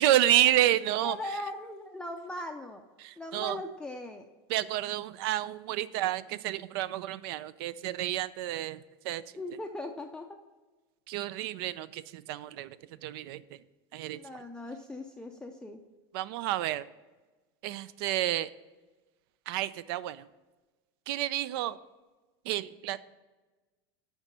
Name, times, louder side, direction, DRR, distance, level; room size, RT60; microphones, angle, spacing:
voice 1, 0.0-1.2 3.0-3.6 4.5-8.8 9.0-9.2 11.1-12.8 13.0-13.4 13.9-14.2 16.1-16.9 17.6-18.5 19.5-20.2 21.1-21.8 22.5-23.0, right 13 dB, 70° right, 17 dB, 0.4 m, -29 dB
voice 2, 1.0-2.8 3.2-4.3 9.4-10.4 14.1-15.8, left 2 dB, 5° left, 2 dB, 0.4 m, -39 dB
8.0 x 5.0 x 5.4 m, 1.2 s
supercardioid pair, 140°, 13 cm